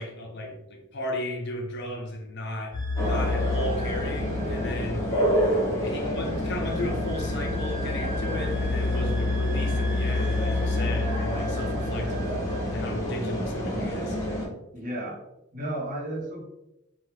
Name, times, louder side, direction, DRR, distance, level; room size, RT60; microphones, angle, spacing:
voice 1, 0.0-5.1 5.8-12.4 12.7-14.3, left 1 dB, 60° left, 1 dB, 0.6 m, -35 dB
sound 1, 2.7-14.0, left 3 dB, 20° right, 1.3 m, -30 dB
sound 2, 2.9-14.5, equal, 15° left, 0.9 m, -29 dB
voice 2, 14.7-15.2 15.5-16.4, right 1 dB, 40° right, -2 dB, 0.8 m, -33 dB
2.9 x 2.2 x 3.3 m, 0.89 s
head